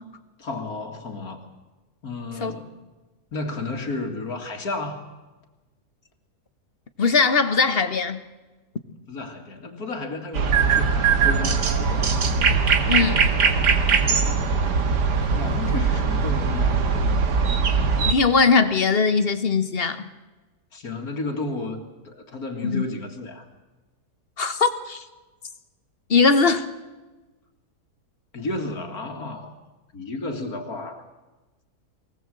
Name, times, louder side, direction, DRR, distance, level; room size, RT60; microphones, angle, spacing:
voice 1, 0.4-1.4 2.0-2.8 3.3-5.0 9.1-12.2 15.3-16.8 20.7-23.5 28.3-29.6 29.9-31.0, left 2 dB, 60° left, 4 dB, 2.5 m, -32 dB
voice 2, 7.0-8.2 12.9-13.2 18.0-20.1 22.6-22.9 24.4-25.0 26.1-26.6, left 4 dB, 40° left, 10 dB, 1.3 m, -20 dB
sound 1, 10.3-18.1, right 5 dB, 85° right, 2.1 m, -21 dB
23.5 x 17.5 x 7.7 m, 1.2 s
omnidirectional pair, 1.7 m